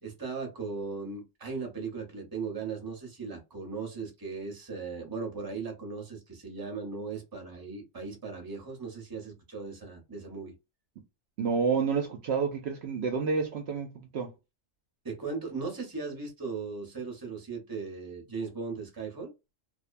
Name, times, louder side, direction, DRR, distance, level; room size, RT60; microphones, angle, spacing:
voice 1, 0.0-10.5 15.0-19.3, right 4 dB, 20° right, 0.9 m, -38 dB
voice 2, 11.4-14.3, right 5 dB, 65° right, 0.8 m, -29 dB
2.5 x 2.1 x 2.4 m
omnidirectional pair, 1.2 m